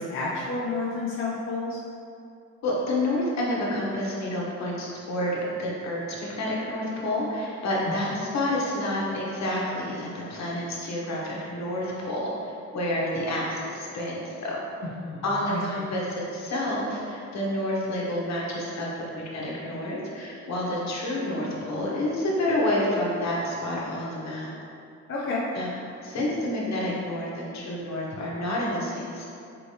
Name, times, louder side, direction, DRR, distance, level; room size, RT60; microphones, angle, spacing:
voice 1, 0.0-1.8 7.8-7.9 14.8-15.9 25.1-25.4, left 3 dB, 45° left, -7 dB, 0.7 m, -31 dB
voice 2, 2.6-14.6 15.2-18.9 19.3-24.5 25.5-25.7 26.0-29.2, left 1 dB, 65° left, -4 dB, 1.0 m, -29 dB
4.5 x 3.2 x 2.8 m, 2.6 s
cardioid pair, 90°, 30 cm